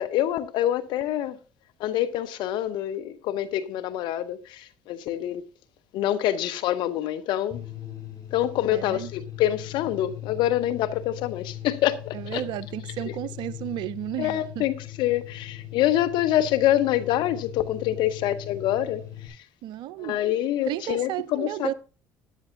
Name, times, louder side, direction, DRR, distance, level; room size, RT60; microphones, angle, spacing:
voice 1, 0.0-1.4 1.8-5.4 5.9-7.6 8.3-12.4 14.2-19.0 20.0-21.7, left 12 dB, 70° left, 1.1 m, -26 dB
sound 1, 7.5-19.3, left 13 dB, 50° left, 5.6 m, -40 dB
voice 2, 8.7-9.1 12.1-14.7 19.6-20.2 20.7-21.7, right 13 dB, 65° right, 0.6 m, -33 dB
14.0 x 10.5 x 2.7 m
hypercardioid pair, 60°, 8 cm